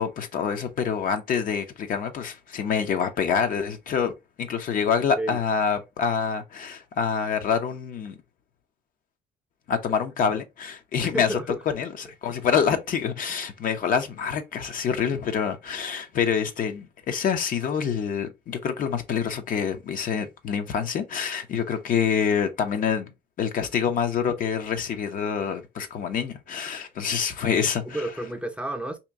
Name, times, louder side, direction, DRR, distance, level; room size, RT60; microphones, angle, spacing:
voice 1, 0.0-4.1 4.4-8.2 9.7-11.4 11.8-28.0, left 7 dB, 55° left, 0.7 m, -26 dB
voice 2, 4.8-5.4 11.1-11.6 27.8-29.0, right 1 dB, 5° right, 0.5 m, -31 dB
2.9 x 2.6 x 3.5 m
cardioid pair, 110°, 17 cm